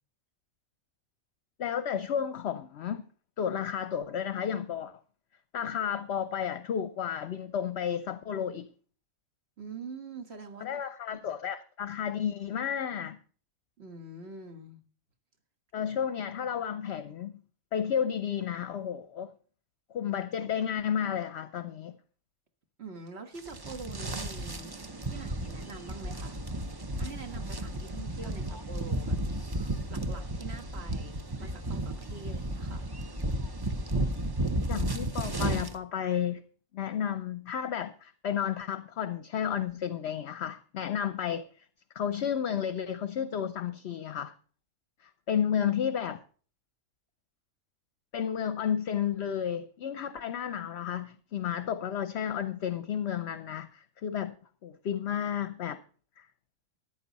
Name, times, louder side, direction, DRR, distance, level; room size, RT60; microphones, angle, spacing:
voice 1, 1.6-3.0 3.4-4.9 5.5-8.7 10.6-13.2 15.7-17.4 17.7-19.3 19.9-22.0 34.7-36.4 36.7-41.5 41.9-44.3 45.0-46.2 48.1-54.4 54.6-55.8 56.2-56.3, left 8 dB, 60° left, 0.8 m, -32 dB
voice 2, 9.6-10.8 11.1-11.2 13.8-14.8 22.8-24.7 25.0-26.4 27.0-29.2 29.9-32.9 45.3-45.5, right 4 dB, 50° right, 1.8 m, -45 dB
sound 1, 23.4-35.7, right 1 dB, 20° right, 0.7 m, -33 dB
13.5 x 10.5 x 4.1 m
omnidirectional pair, 1.4 m